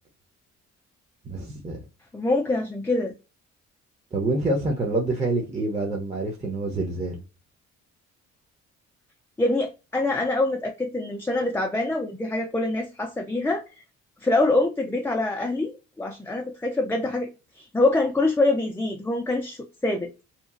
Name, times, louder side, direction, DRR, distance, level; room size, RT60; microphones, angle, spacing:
voice 1, 1.2-1.8 4.1-7.2, right 2 dB, 20° right, 0.7 m, -27 dB
voice 2, 2.1-3.2 9.4-13.6 14.2-17.3 17.6-20.1, left 2 dB, 10° left, 0.4 m, -25 dB
2.9 x 2.4 x 2.4 m
cardioid pair, 90°, 30 cm